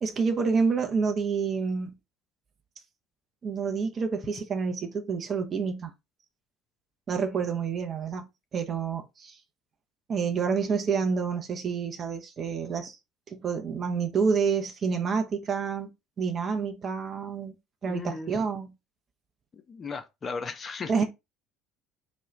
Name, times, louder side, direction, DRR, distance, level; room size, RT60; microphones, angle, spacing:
voice 1, 0.0-1.9 3.4-5.9 7.1-8.3 8.5-9.3 10.1-13.0 13.3-15.9 16.2-17.6 17.8-18.7 20.9-21.0, right 5 dB, 35° right, 0.5 m, -28 dB
voice 2, 17.9-18.5 19.7-21.0, left 5 dB, 30° left, 0.4 m, -36 dB
2.3 x 2.1 x 3.0 m
figure-of-eight pair, 60°, 0 cm